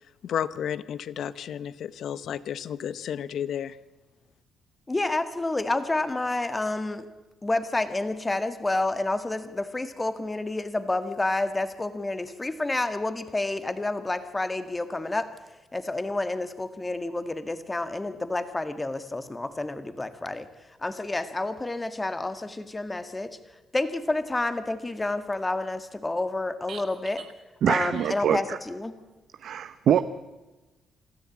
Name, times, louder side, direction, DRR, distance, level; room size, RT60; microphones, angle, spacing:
voice 1, 0.2-3.8, left 9 dB, 70° left, 16 dB, 0.8 m, -32 dB
voice 2, 4.9-7.1 7.4-15.3 15.7-20.5 20.8-23.3 23.7-27.2 27.7-29.0, left 2 dB, 20° left, 10 dB, 1.8 m, -29 dB
voice 3, 27.6-28.6 29.4-30.0, right 9 dB, 70° right, 11 dB, 0.8 m, -24 dB
26.0 x 13.5 x 8.6 m, 1.1 s
cardioid pair, 90°, 0 cm